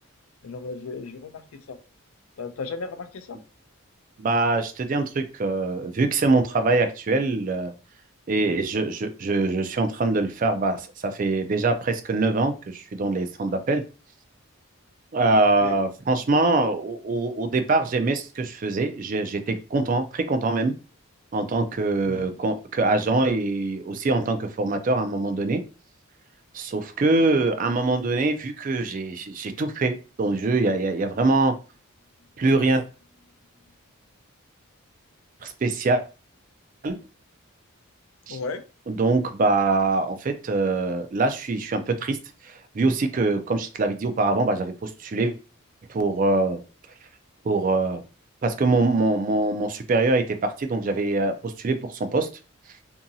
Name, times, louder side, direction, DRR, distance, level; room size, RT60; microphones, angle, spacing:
voice 1, 0.4-1.8 2.4-3.4 8.3-8.6 15.6-15.8 22.0-22.3 38.3-38.6, left 4 dB, 75° left, 0.4 m, -35 dB
voice 2, 4.2-7.7 8.3-13.8 15.1-20.8 21.3-25.6 26.5-31.5 32.4-32.8 35.4-36.0 36.8-37.0 38.3-38.4 38.9-42.2 42.4-45.3 45.9-46.6 47.4-48.0 48.4-52.3, right 3 dB, 40° right, 0.3 m, -23 dB
2.7 x 2.7 x 2.5 m
head